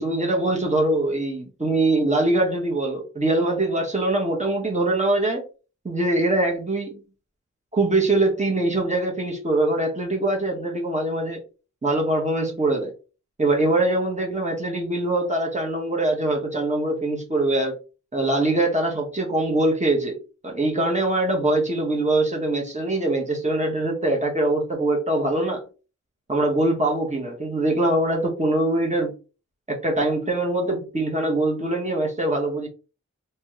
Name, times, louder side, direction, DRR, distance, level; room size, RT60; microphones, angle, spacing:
voice 1, 0.0-5.4 5.8-7.0 7.7-11.4 11.8-12.9 13.4-17.8 18.1-20.2 20.4-25.6 26.3-29.1 29.7-32.7, right 2 dB, 25° right, 0 dB, 1.4 m, -23 dB
3.3 x 2.9 x 3.2 m, 0.33 s
wide cardioid pair, 65°, 29 cm